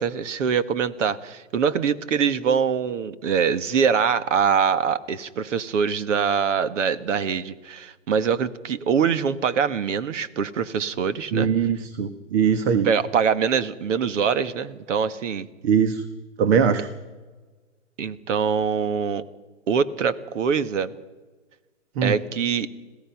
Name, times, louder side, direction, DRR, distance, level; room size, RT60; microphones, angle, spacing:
voice 1, 0.0-11.5 12.8-15.5 18.0-19.2 19.7-20.9 22.0-22.7, right 6 dB, 75° right, 13 dB, 1.5 m, -23 dB
voice 2, 11.3-12.9 15.6-16.0 16.4-16.9 22.0-22.2, right 7 dB, 55° right, 10 dB, 1.6 m, -21 dB
27.0 x 16.5 x 5.9 m, 1.3 s
hypercardioid pair, 135°, 38 cm